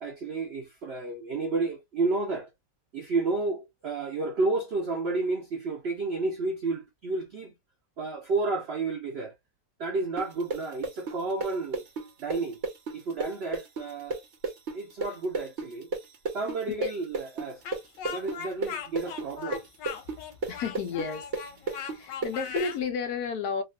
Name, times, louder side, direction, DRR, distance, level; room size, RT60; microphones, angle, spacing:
voice 1, 0.0-2.5 2.9-7.5 8.0-9.4 9.8-11.8 12.2-12.6 12.9-14.2 14.7-15.9 16.3-17.6 18.1-19.6 20.5-20.6, right 3 dB, 85° right, 0.5 m, -31 dB
sound 1, 10.2-17.8 18.0-22.6, right 3 dB, 50° right, 1.0 m, -32 dB
Speech, 17.6-22.8, left 7 dB, 90° left, 1.4 m, -39 dB
voice 2, 20.5-21.3 21.7-23.6, left 5 dB, 70° left, 1.1 m, -32 dB
3.6 x 2.4 x 2.3 m
omnidirectional pair, 1.9 m